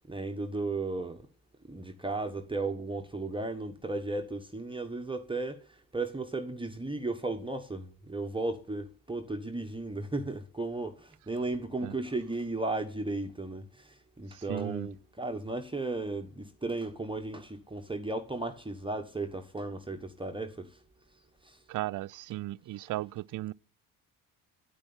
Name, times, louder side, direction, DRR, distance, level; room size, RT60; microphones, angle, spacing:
voice 1, 0.1-1.3 1.6-20.8 21.4-21.6, right 2 dB, 10° right, 1.3 m, -35 dB
voice 2, 14.3-14.9 21.7-23.5, right 16 dB, 45° right, 0.5 m, -36 dB
9.3 x 8.9 x 8.8 m
supercardioid pair, 65°, 43 cm